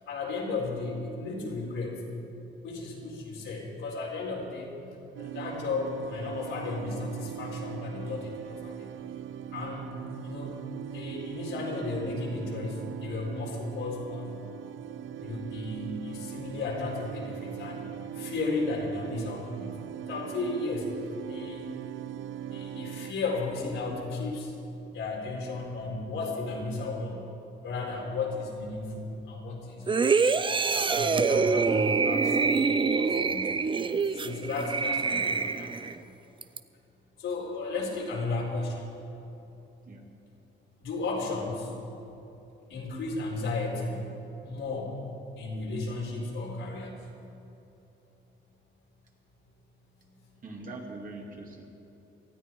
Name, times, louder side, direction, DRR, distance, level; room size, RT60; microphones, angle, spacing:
voice 1, 0.1-2.0 2.6-4.7 5.2-8.9 9.5-9.9 10.2-10.6 10.9-14.4 15.2-19.8 20.1-20.9 21.2-21.7 22.5-24.5 24.9-27.2 27.6-30.1 30.7-32.5 32.9-33.7 34.1-35.8 37.2-38.9 40.8-41.7 42.7-44.1 44.4-45.0 45.4-46.9 50.0-50.2, left 3 dB, 80° left, -3 dB, 4.0 m, -34 dB
sound 1, 5.2-23.1, right 10 dB, 85° right, 0.5 m, -40 dB
sound 2, 29.9-36.0 36.4-36.6, right 5 dB, 25° right, 0.6 m, -25 dB
voice 2, 50.4-51.6, right 2 dB, 45° right, 0 dB, 2.6 m, -42 dB
19.0 x 13.5 x 4.7 m, 2.9 s
cardioid pair, 90°, 20 cm